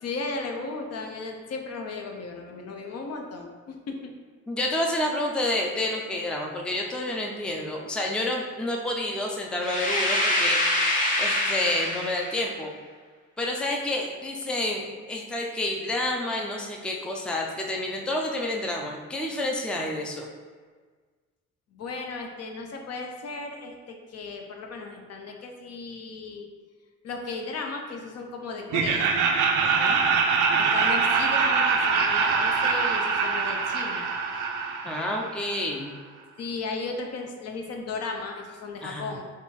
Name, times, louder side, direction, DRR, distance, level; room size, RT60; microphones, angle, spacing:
voice 1, 0.0-4.1 21.7-26.5 27.0-29.1 30.6-34.1 36.4-39.2, left 3 dB, 55° left, 2 dB, 0.6 m, -35 dB
voice 2, 4.5-10.6 10.8-12.7 13.4-20.3 29.6-30.0 34.8-35.9 38.8-39.1, left 1 dB, 5° left, 0 dB, 0.4 m, -29 dB
sound 1, 9.6-12.4, left 1 dB, 25° left, 0.9 m, -25 dB
Laughter, 28.7-35.6, right 5 dB, 80° right, 0.5 m, -24 dB
3.6 x 2.3 x 4.2 m, 1.5 s
cardioid pair, 90°, 30 cm